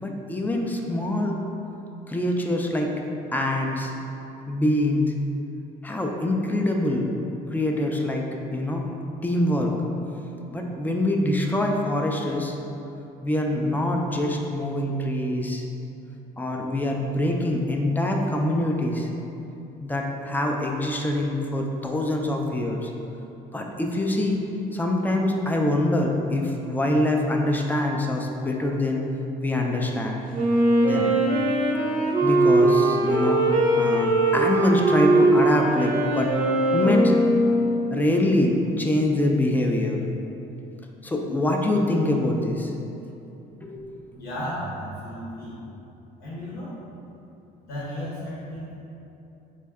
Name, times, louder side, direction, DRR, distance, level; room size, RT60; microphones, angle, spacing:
voice 1, 0.0-1.4 2.1-2.9 3.3-3.9 4.5-5.1 5.8-7.1 7.5-8.8 9.2-9.7 10.5-12.6 13.2-15.7 16.4-19.1 19.8-22.9 23.5-24.4 24.7-29.1 29.4-30.2 30.8-31.1 32.2-36.3 36.7-37.1 37.9-40.0 41.0-42.7 43.6-43.8, left 1 dB, 10° left, 1 dB, 0.3 m, -24 dB
Wind instrument woodwind instrument, 30.3-38.1, right 1 dB, 55° right, 0.6 m, -21 dB
voice 2, 44.1-45.6 46.2-46.7 47.7-48.7, equal, 80° left, -8 dB, 0.9 m, -34 dB
3.5 x 2.1 x 3.4 m, 2.9 s
cardioid pair, 110°, 17 cm